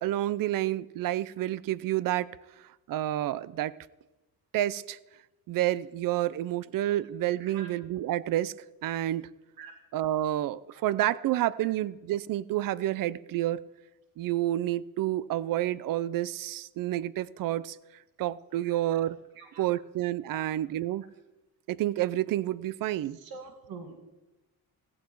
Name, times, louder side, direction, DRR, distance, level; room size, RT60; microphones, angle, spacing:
voice 1, 0.0-2.3 2.9-3.8 4.5-5.0 5.5-8.5 8.8-9.3 9.9-13.6 14.2-17.8 18.2-19.2 19.6-21.0 21.7-23.2, right 14 dB, 70° right, 19 dB, 0.6 m, -29 dB
voice 2, 7.4-7.7 9.6-9.7 11.6-11.7 18.6-19.0 19.4-19.7 20.3-20.5 23.1-24.0, right 5 dB, 90° right, 5 dB, 2.3 m, -46 dB
16.0 x 15.5 x 4.6 m, 1.0 s
cardioid pair, 150°, 35 cm